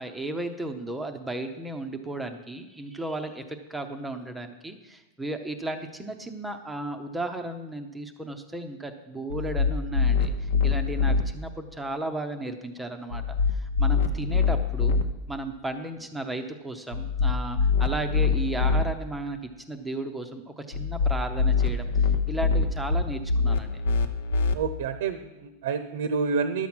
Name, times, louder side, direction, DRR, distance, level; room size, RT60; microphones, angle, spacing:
voice 1, 0.0-15.0 15.3-19.4 19.7-23.8, right 2 dB, 5° right, 5 dB, 0.6 m, -34 dB
sound 1, 9.3-11.2 13.1-15.0 16.9-18.8 20.7-24.5, left 4 dB, 90° left, 0.8 m, -24 dB
voice 2, 24.5-26.7, right 5 dB, 70° right, 10 dB, 0.7 m, -28 dB
11.5 x 7.2 x 6.0 m, 1.0 s
supercardioid pair, 170°, 0 cm